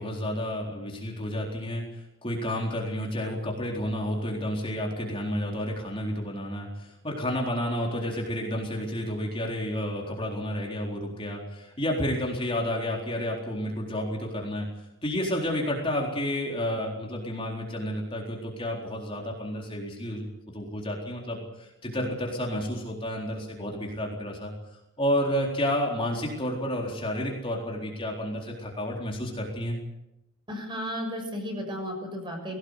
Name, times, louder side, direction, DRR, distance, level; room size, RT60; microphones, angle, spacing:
voice 1, 0.0-14.7 15.0-20.3 20.5-24.5 25.0-29.8, equal, 25° left, -1 dB, 4.1 m, -30 dB
voice 2, 30.5-32.6, equal, 25° right, 3 dB, 6.8 m, -34 dB
21.0 x 18.0 x 8.3 m, 0.90 s
head